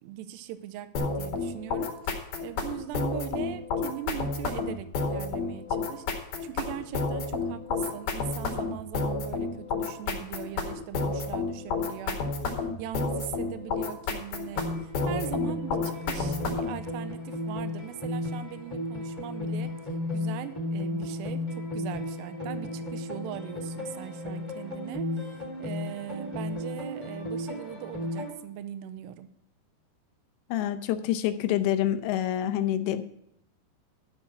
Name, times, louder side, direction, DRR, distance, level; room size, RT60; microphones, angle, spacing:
voice 1, 0.0-12.2 12.5-19.7 20.1-29.3, right 12 dB, 80° right, 11 dB, 2.6 m, -40 dB
sound 1, 1.0-16.8, left 4 dB, 60° left, 3.5 m, -30 dB
sound 2, 14.5-28.3, left 1 dB, 5° left, 1.6 m, -34 dB
voice 2, 30.5-33.0, left 11 dB, 80° left, 9 dB, 2.9 m, -27 dB
12.5 x 6.1 x 5.9 m, 0.76 s
omnidirectional pair, 5.3 m